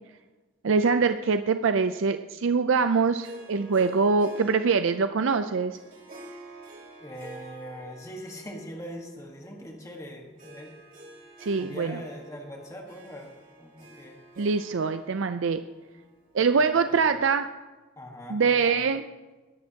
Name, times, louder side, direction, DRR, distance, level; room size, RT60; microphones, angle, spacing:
voice 1, 0.6-5.8 11.4-12.0 14.4-15.6 16.3-17.5 18.3-19.0, right 5 dB, 75° right, 9 dB, 0.5 m, -24 dB
Harp, 3.2-16.8, right 1 dB, 45° right, 3.1 m, -49 dB
voice 2, 7.0-10.7 11.6-13.3 13.6-14.2 16.5-17.2 18.0-18.9, equal, 15° left, 1 dB, 1.4 m, -42 dB
20.0 x 10.5 x 2.9 m, 1.2 s
head